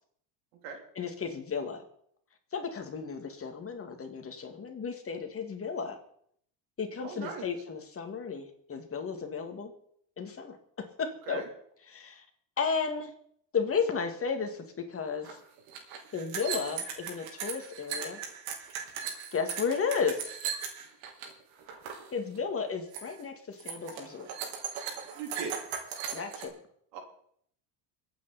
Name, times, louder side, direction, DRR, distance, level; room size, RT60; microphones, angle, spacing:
voice 1, 0.9-1.8 2.5-6.0 6.8-9.7 10.2-11.4 11.8-12.3 12.6-13.1 13.5-15.4 16.1-18.2 19.3-20.3 22.1-24.3 26.1-26.6, left 5 dB, 30° left, 6 dB, 2.4 m, -33 dB
voice 2, 7.0-7.5 11.3-11.4 25.2-25.5 26.9-27.0, right 5 dB, 90° right, 2 dB, 3.9 m, -38 dB
sound 1, 15.2-15.3 15.6-21.3 21.6-22.1 22.4-22.6 22.9-23.2 23.6-26.5, right 7 dB, 75° right, 3.6 m, -38 dB
24.0 x 8.9 x 4.3 m, 0.66 s
supercardioid pair, 115°, 48 cm